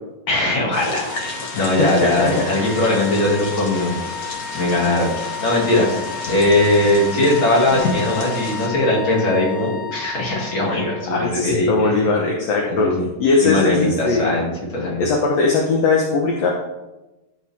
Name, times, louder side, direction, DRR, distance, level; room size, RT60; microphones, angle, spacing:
voice 1, 0.3-4.0 4.2-12.1 12.7-13.0 13.4-15.0, left 1 dB, 40° left, -3 dB, 2.7 m, -20 dB
sound 1, 0.7-8.7, left 2 dB, 85° left, 0.8 m, -31 dB
sound 2, 1.1-11.1, left 7 dB, 10° right, 2.4 m, -33 dB
voice 2, 1.6-2.3 11.1-12.9 13.2-14.4 15.0-16.5, left 3 dB, 65° left, 0 dB, 1.9 m, -19 dB
12.0 x 6.4 x 3.5 m, 1.0 s
omnidirectional pair, 3.9 m